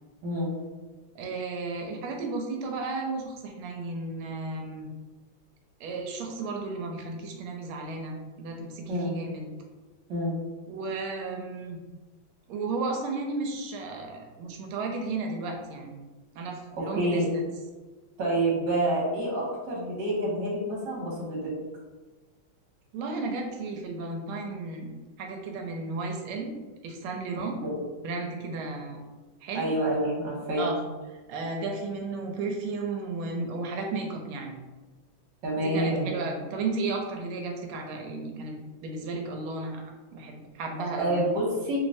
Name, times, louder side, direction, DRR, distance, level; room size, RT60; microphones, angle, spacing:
voice 1, 1.1-4.9 5.8-9.5 10.7-11.8 12.5-16.0 16.3-17.4 22.9-24.9 25.2-26.5 26.8-27.6 28.0-29.0 29.4-29.7 30.6-30.8 31.3-34.6 35.6-38.6 38.8-39.8 40.1-41.1, right 3 dB, 85° right, 2 dB, 1.5 m, -33 dB
voice 2, 16.7-17.2 18.2-21.5 27.6-27.7 29.5-30.7 35.4-36.1 40.8-41.8, right 1 dB, 65° right, -4 dB, 1.5 m, -28 dB
3.4 x 3.0 x 2.6 m, 1.2 s
omnidirectional pair, 2.3 m